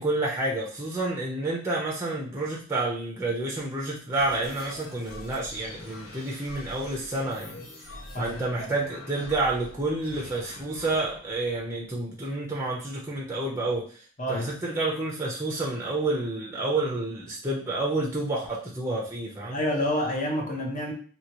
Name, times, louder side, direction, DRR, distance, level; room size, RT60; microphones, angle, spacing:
voice 1, 0.0-7.7 8.2-13.9 14.3-19.6, right 2 dB, 10° right, 0.6 m, -29 dB
sound 1, 4.1-12.3, left 2 dB, 65° left, 1.1 m, -45 dB
voice 2, 8.1-8.7 14.2-14.6 19.5-20.9, left 1 dB, 35° left, 0.8 m, -28 dB
2.9 x 2.8 x 2.9 m
head